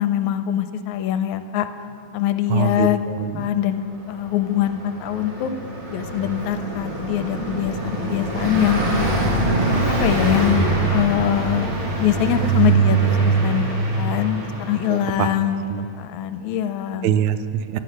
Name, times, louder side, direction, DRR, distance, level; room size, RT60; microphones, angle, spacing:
voice 1, 0.0-1.7 2.1-3.0 3.4-5.5 5.9-8.8 10.0-11.7 12.0-13.6 14.0-15.6 16.0-17.1, left 11 dB, 85° left, 10 dB, 2.0 m, -23 dB
voice 2, 2.5-3.4 14.9-15.3 15.7-15.9 17.0-17.8, right 8 dB, 75° right, 11 dB, 1.9 m, -23 dB
Car passing by, 4.3-15.3, right 3 dB, 45° right, 2.7 m, -23 dB
15.5 x 11.5 x 6.4 m, 2.3 s
omnidirectional pair, 3.4 m